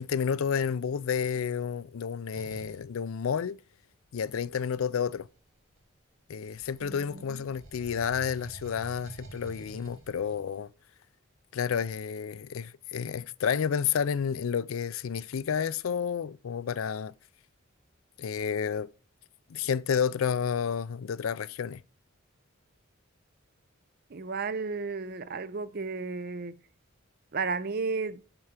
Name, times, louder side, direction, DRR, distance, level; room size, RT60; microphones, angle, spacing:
voice 1, 0.0-3.6 4.1-5.3 6.3-10.7 11.5-17.1 18.2-18.9 19.5-21.8, left 7 dB, 85° left, 0.4 m, -30 dB
sound 1, 2.3-2.8 4.1-6.0 6.4-10.6, right 3 dB, 80° right, 2.1 m, -49 dB
voice 2, 6.8-7.4 24.1-26.6 27.3-28.2, right 4 dB, 45° right, 0.5 m, -33 dB
8.8 x 4.6 x 6.6 m
head